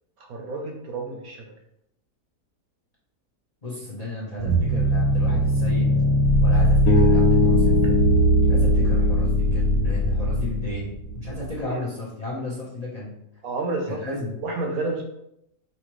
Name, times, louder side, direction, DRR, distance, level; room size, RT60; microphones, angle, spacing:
voice 1, 0.3-1.5 7.8-8.0 11.7-11.8 13.4-15.0, right 3 dB, 65° right, 2 dB, 1.1 m, -30 dB
voice 2, 3.6-5.9 6.4-7.7 8.5-13.1 13.9-14.3, left 2 dB, 30° left, -5 dB, 0.8 m, -33 dB
sound 1, 4.4-11.6, equal, 85° right, 1.2 m, -20 dB
Bass guitar, 6.9-11.0, left 2 dB, 65° left, 1.3 m, -24 dB
5.5 x 2.8 x 3.1 m, 0.81 s
omnidirectional pair, 1.8 m